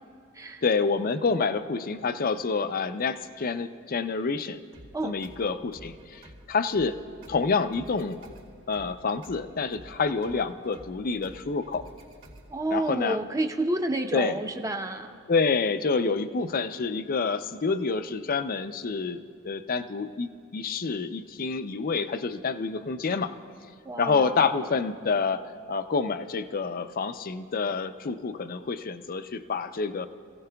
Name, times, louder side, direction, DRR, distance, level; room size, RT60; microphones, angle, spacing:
voice 1, 0.6-4.6 5.0-6.2 6.5-7.0 7.3-8.3 8.7-11.8 12.7-13.2 14.1-14.4 15.3-23.3 24.0-30.1, left 4 dB, 45° left, 10 dB, 0.5 m, -28 dB
sound 1, 4.7-12.7, right 1 dB, 70° right, 2.9 m, -51 dB
voice 2, 12.5-15.2 23.8-24.7, right 1 dB, 15° right, 5 dB, 0.7 m, -30 dB
28.0 x 16.5 x 2.3 m, 2.1 s
head